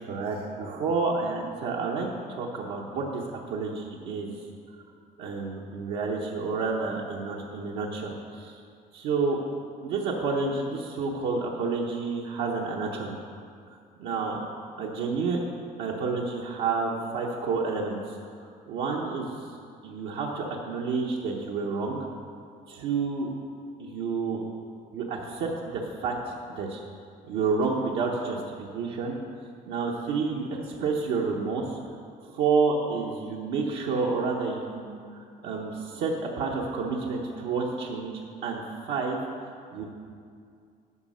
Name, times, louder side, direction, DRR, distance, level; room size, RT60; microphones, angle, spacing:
voice 1, 0.0-4.4 5.2-8.6 8.9-9.4 9.8-13.2 14.0-14.4 14.8-15.4 15.8-18.2 18.7-19.3 19.8-22.0 22.7-23.3 23.8-24.4 24.9-26.1 26.5-26.8 27.2-29.2 29.7-31.8 32.2-39.2 39.7-39.9, right 4 dB, 90° right, -2 dB, 1.0 m, -29 dB
9.6 x 5.7 x 6.2 m, 2.3 s
cardioid pair, 110°, 17 cm